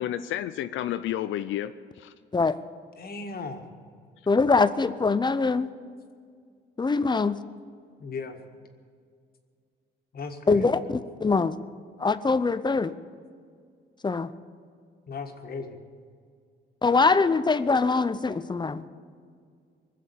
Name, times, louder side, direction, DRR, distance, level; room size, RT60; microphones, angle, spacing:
voice 1, 0.0-2.1, left 12 dB, 80° left, 10 dB, 0.5 m, -31 dB
voice 2, 3.0-3.7 8.0-8.4 10.1-10.7 15.1-15.8, left 4 dB, 50° left, 4 dB, 1.8 m, -37 dB
voice 3, 4.3-5.7 6.8-7.4 10.5-11.6 12.0-12.9 14.0-14.3 16.8-18.8, left 4 dB, 20° left, 13 dB, 0.6 m, -23 dB
20.5 x 7.6 x 8.4 m, 2.1 s
cardioid pair, 90°, 20 cm